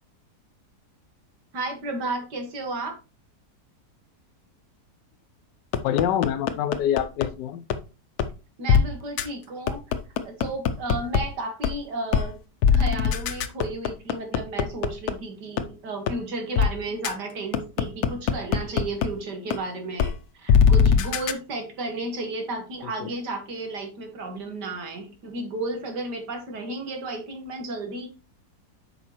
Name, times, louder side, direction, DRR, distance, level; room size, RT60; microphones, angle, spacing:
voice 1, 1.5-3.0 8.6-9.8 10.2-12.4 12.7-28.1, right 2 dB, 75° right, 2.3 m, -33 dB
sound 1, 5.7-7.3 7.7-7.8 8.2-8.3 8.7-8.8 9.2-9.3 9.7-11.2 11.6-11.7 12.1-12.3 12.6-15.1 15.6-15.7 16.1-16.2 16.6-16.7 17.0-17.1 17.5-19.1 19.5-19.6 20.0-20.1 20.5-21.3, left 7 dB, 70° left, 1.1 m, -20 dB
voice 2, 5.8-7.6 22.8-23.1, left 10 dB, 90° left, 1.3 m, -26 dB
8.2 x 5.6 x 3.1 m
omnidirectional pair, 1.8 m